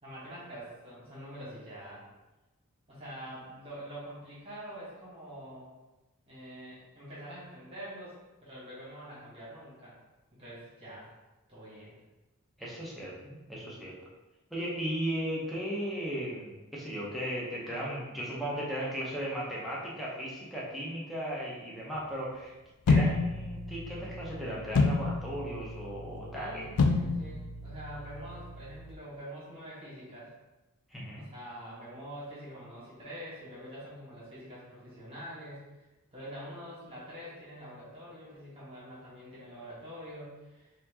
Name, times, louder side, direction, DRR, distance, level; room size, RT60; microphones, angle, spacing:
voice 1, 0.0-2.1 2.9-5.7 6.3-9.9 10.4-11.1 11.5-11.9 26.3-30.3 31.2-35.6 36.1-40.7, equal, 25° right, -8 dB, 1.3 m, -45 dB
voice 2, 12.6-13.9 14.5-22.5 22.9-26.6 30.9-31.2, equal, ahead, -7 dB, 0.7 m, -36 dB
sound 1, 22.9-28.9, left 3 dB, 90° left, 0.4 m, -30 dB
4.2 x 2.7 x 2.8 m, 1.1 s
head